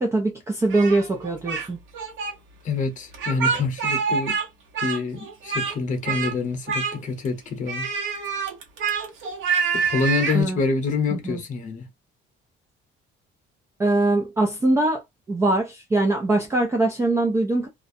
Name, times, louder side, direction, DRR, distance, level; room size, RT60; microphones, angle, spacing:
voice 1, 0.0-1.8 10.3-10.6 11.1-11.4 13.8-15.0 15.3-17.7, right 2 dB, 15° right, 0.4 m, -22 dB
Speech, 0.7-1.7 1.9-2.3 3.1-4.5 4.7-5.8 6.0-6.3 6.7-7.3 7.7-10.4, right 5 dB, 70° right, 1.0 m, -26 dB
voice 2, 2.6-4.4 4.8-7.9 9.7-11.9, left 4 dB, 35° left, 0.8 m, -26 dB
2.5 x 2.1 x 2.6 m
cardioid pair, 165°, 21 cm